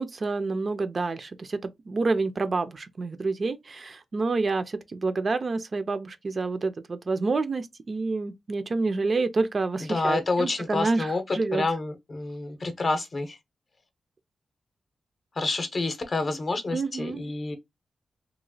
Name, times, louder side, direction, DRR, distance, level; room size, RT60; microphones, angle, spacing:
voice 1, 0.0-1.6 1.9-11.6 16.7-17.3, right 3 dB, 40° right, 0.4 m, -28 dB
voice 2, 9.8-13.4 15.4-17.6, left 3 dB, 40° left, 0.7 m, -28 dB
2.9 x 2.4 x 2.6 m
wide cardioid pair, 125°, 0 cm